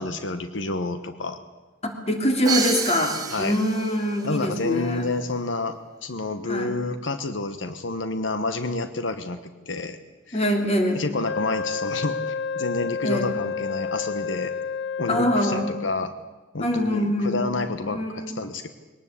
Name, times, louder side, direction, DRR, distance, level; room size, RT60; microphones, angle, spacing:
voice 1, 0.0-1.4 3.3-3.5 4.2-9.4 9.7-10.0 10.3-10.4 10.9-14.5 15.0-16.1 16.5-18.7, left 3 dB, 85° left, 10 dB, 1.2 m, -29 dB
voice 2, 1.8-5.1 6.5-6.7 10.3-11.0 13.0-13.3 15.1-15.7 16.6-17.5 17.9-18.4, left 1 dB, 35° left, 4 dB, 3.2 m, -24 dB
Crash cymbal, 2.4-4.3, right 6 dB, 20° right, 1.9 m, -29 dB
Wind instrument woodwind instrument, 11.2-16.0, left 5 dB, 65° left, 0.6 m, -30 dB
22.0 x 18.5 x 8.4 m, 1.2 s
head